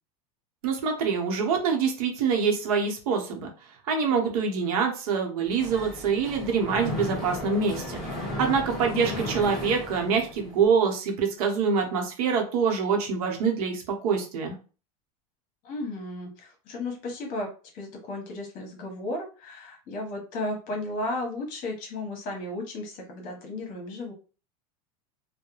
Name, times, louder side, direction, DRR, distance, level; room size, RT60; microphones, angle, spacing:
voice 1, 0.6-3.5 3.9-8.0 8.4-14.5, right 5 dB, 70° right, 3 dB, 0.8 m, -25 dB
Mechanisms, 5.5-10.6, left 1 dB, ahead, 1.2 m, -35 dB
voice 2, 8.8-9.2 15.6-24.1, left 2 dB, 45° left, 2 dB, 1.0 m, -34 dB
2.3 x 2.1 x 2.9 m, 0.35 s
supercardioid pair, 125°, 19 cm